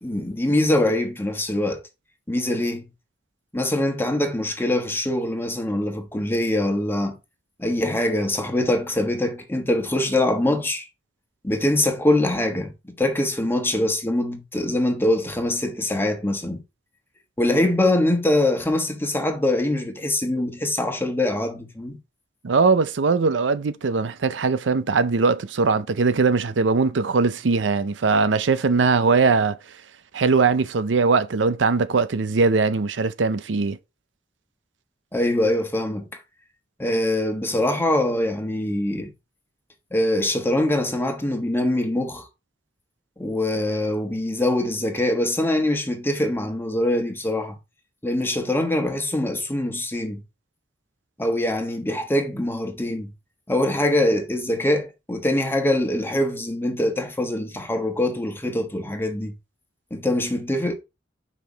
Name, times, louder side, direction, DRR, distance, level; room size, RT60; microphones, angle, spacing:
voice 1, 0.0-1.8 2.3-2.8 3.5-7.2 7.6-10.9 11.4-16.6 17.4-22.0 35.1-36.0 36.8-39.1 39.9-42.3 43.2-47.5 48.0-50.2 51.2-53.1 53.5-59.3 59.9-60.7, left 1 dB, 10° left, 1.2 m, -23 dB
voice 2, 22.4-29.6 30.1-33.8, right 4 dB, 85° right, 0.6 m, -20 dB
5.9 x 5.1 x 4.0 m
head